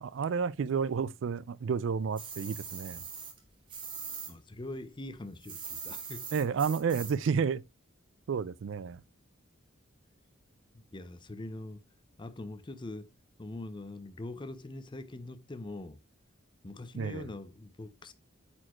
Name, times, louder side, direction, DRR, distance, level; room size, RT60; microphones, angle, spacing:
voice 1, 0.0-3.0 6.3-7.6 8.3-9.0 17.0-17.2, right 6 dB, 65° right, 0.3 m, -31 dB
sound 1, 2.2-4.3 4.6-7.3, right 6 dB, 25° right, 1.3 m, -42 dB
voice 2, 4.3-6.3 10.9-11.8 12.2-13.1 13.4-16.0 16.6-18.1, left 2 dB, 25° left, 0.5 m, -43 dB
8.7 x 4.4 x 3.0 m
head